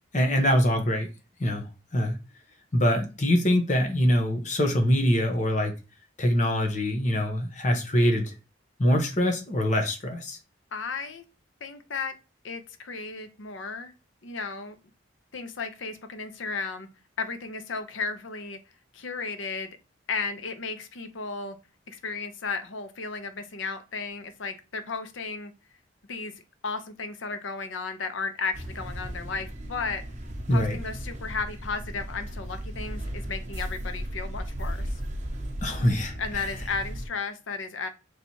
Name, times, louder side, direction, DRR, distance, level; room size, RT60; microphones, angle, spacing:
voice 1, 0.1-1.1 1.4-1.6 1.9-2.2 2.7-5.7 6.2-8.3 8.8-10.4 30.5-30.8 35.6-36.5, equal, 40° left, 0.9 m, -24 dB
voice 2, 10.7-11.2 11.6-12.2 12.4-13.9 14.2-14.8 15.3-16.9 17.2-18.6 18.9-19.7 20.1-21.6 21.9-25.5 26.1-26.3 26.6-30.0 30.5-34.9 36.2-37.9, left 4 dB, 80° left, 0.7 m, -34 dB
sound 1, 28.5-37.1, equal, 40° right, 0.9 m, -35 dB
4.4 x 3.2 x 2.8 m
head